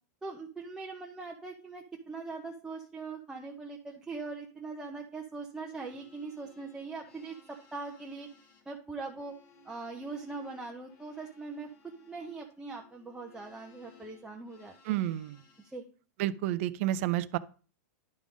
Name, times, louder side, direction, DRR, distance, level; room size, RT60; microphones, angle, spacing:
voice 1, 0.2-8.3 8.7-9.3 9.6-11.7 12.0-15.1 15.7-15.8, right 3 dB, 5° right, 0.6 m, -41 dB
sound 1, 5.5-15.8, left 4 dB, 35° left, 1.4 m, -61 dB
voice 2, 14.8-15.4 16.2-17.4, right 14 dB, 50° right, 0.5 m, -30 dB
10.5 x 3.7 x 5.0 m
supercardioid pair, 150°, 9 cm